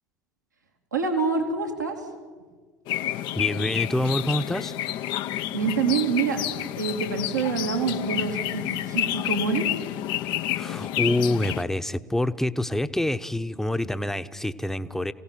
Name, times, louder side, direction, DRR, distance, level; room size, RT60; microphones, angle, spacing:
voice 1, 0.9-2.0 5.5-6.4 6.8-9.7, right 5 dB, 85° right, 2 dB, 2.8 m, -26 dB
sound 1, 2.9-11.6, left 13 dB, 55° left, 0.9 m, -29 dB
voice 2, 3.4-4.7 10.6-15.1, left 1 dB, 5° left, 11 dB, 1.0 m, -26 dB
27.5 x 17.0 x 9.1 m, 1.5 s
figure-of-eight pair, 70°, 9 cm